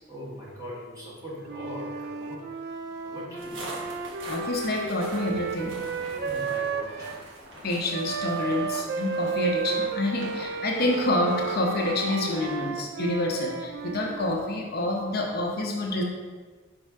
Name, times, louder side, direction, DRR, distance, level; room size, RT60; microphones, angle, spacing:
voice 1, 0.1-2.4 3.0-3.7 6.1-7.1 10.2-10.3, left 1 dB, 15° right, -6 dB, 1.5 m, -40 dB
Wind instrument woodwind instrument, 1.4-7.2 7.9-14.4, right 5 dB, 55° right, 0.4 m, -33 dB
sound 1, 3.4-12.5, equal, 75° right, 1.3 m, -43 dB
voice 2, 4.2-5.8 7.6-16.0, left 1 dB, 50° left, -1 dB, 0.8 m, -28 dB
5.5 x 3.8 x 4.7 m, 1.4 s
head